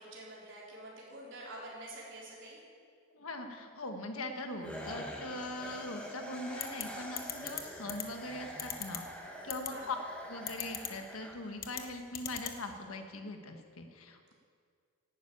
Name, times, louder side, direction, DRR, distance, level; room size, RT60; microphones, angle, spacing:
voice 1, 0.0-2.6 9.7-10.0, right 1 dB, 60° right, -5 dB, 4.4 m, -47 dB
voice 2, 3.1-9.0 9.4-10.0 10.3-14.3, left 2 dB, 85° left, 5 dB, 1.6 m, -41 dB
sound 1, 4.6-11.8, equal, 5° left, 1.6 m, -45 dB
sound 2, 6.6-6.8 7.2-7.6 7.9-8.0 8.6-9.0 9.5-9.7 10.5-10.9 11.6-11.8 12.1-12.5, left 11 dB, 45° left, 1.1 m, -37 dB
11.5 x 10.0 x 8.7 m, 2.2 s
head